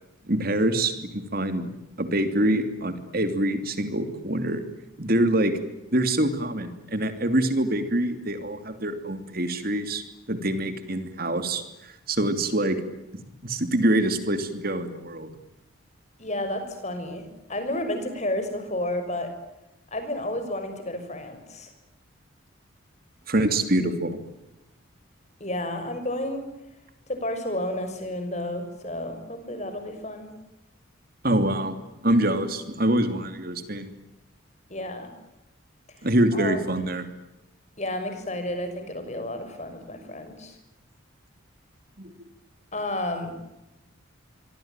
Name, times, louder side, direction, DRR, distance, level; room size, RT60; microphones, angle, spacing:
voice 1, 0.2-1.7 2.0-4.6 5.0-5.5 5.9-10.0 10.3-12.8 13.4-15.3 23.3-24.2 31.2-31.7 32.0-33.9 36.0-37.1 42.0-42.3, right 1 dB, 45° right, 9 dB, 2.9 m, -25 dB
voice 2, 16.2-19.3 19.9-21.7 25.4-26.5 27.1-30.3 34.7-35.1 36.0-36.1 36.3-36.6 37.8-40.6 42.7-43.3, left 1 dB, 35° left, 8 dB, 6.3 m, -31 dB
27.0 x 24.0 x 9.1 m, 0.92 s
head